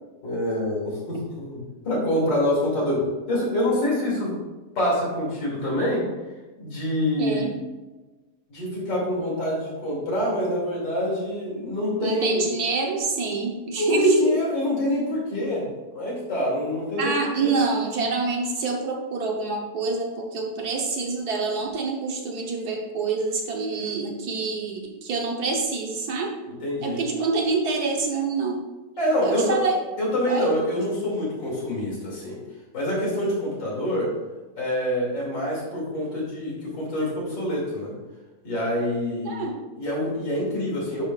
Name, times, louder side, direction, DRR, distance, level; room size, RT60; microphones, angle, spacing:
voice 1, 0.2-4.3 4.7-6.0 6.6-7.5 8.5-12.5 13.8-15.7 15.9-17.1 17.4-17.6 26.5-27.0 29.0-29.6 30.0-32.4 32.7-34.1 34.6-37.9 38.4-39.4 39.7-41.1, left 1 dB, 90° left, -4 dB, 3.3 m, -26 dB
voice 2, 7.2-7.5 12.0-14.4 17.0-26.3 26.8-28.6 29.2-29.8 30.3-30.5 39.2-39.7, right 4 dB, 65° right, 1 dB, 1.6 m, -26 dB
9.9 x 6.7 x 2.4 m, 1.2 s
omnidirectional pair, 1.8 m